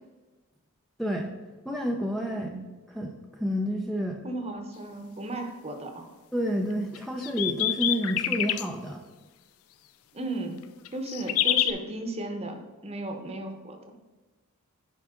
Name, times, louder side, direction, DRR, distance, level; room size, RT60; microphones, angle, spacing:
voice 1, 1.0-1.3 1.7-2.5 2.9-4.2 6.3-9.0, equal, ahead, 0 dB, 0.5 m, -29 dB
voice 2, 4.2-6.1 10.1-10.6 10.9-13.9, right 2 dB, 30° right, 5 dB, 0.9 m, -35 dB
sound 1, 7.0-8.7 10.9-11.7, left 13 dB, 75° left, 0.4 m, -26 dB
9.4 x 4.9 x 3.7 m, 1.2 s
head